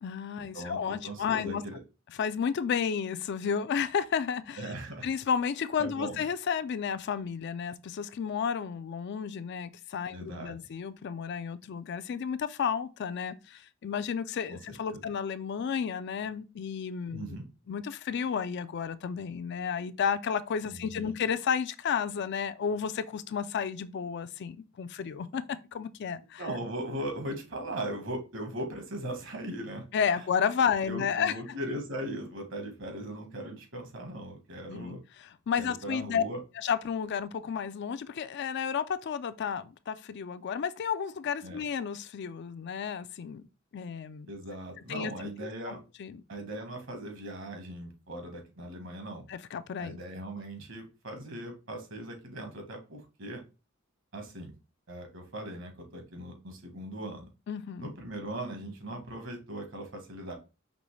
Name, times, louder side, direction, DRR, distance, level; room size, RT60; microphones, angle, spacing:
voice 1, 0.0-1.6 2.2-4.7 5.0-17.4 17.7-26.5 29.9-31.4 34.7-36.2 36.6-43.4 43.7-44.3 44.9-45.1 45.4-46.2 49.3-50.0 57.5-57.9, left 7 dB, 55° left, 0.4 m, -32 dB
voice 2, 0.5-1.8 4.6-5.1 5.8-6.2 10.1-10.5 14.5-14.6 14.9-15.0 17.1-17.4 20.7-21.2 26.4-29.9 30.2-30.3 30.9-35.0 35.6-36.4 41.4-41.6 44.3-45.8 46.3-49.2 49.8-53.4 54.1-54.5 54.9-57.3 57.8-60.4, right 1 dB, 65° right, 1.4 m, -39 dB
5.2 x 3.0 x 3.2 m
head